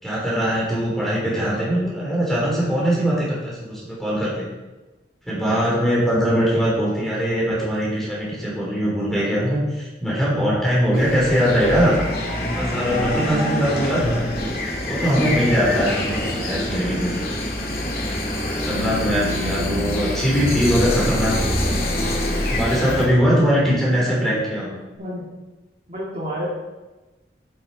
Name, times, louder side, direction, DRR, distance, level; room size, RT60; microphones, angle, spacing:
voice 1, 0.0-4.5 5.2-11.9 12.5-14.5 14.8-17.4 18.5-21.7 22.4-24.7, equal, ahead, -6 dB, 3.2 m, -21 dB
sound 1, 10.9-23.1, left 1 dB, 55° left, 2.4 m, -25 dB
Bass guitar, 18.7-25.0, left 3 dB, 80° right, 2.6 m, -39 dB
voice 2, 19.4-19.9 25.0-25.3 25.9-26.5, equal, 40° right, -6 dB, 2.2 m, -30 dB
10.5 x 9.5 x 4.2 m, 1.1 s
head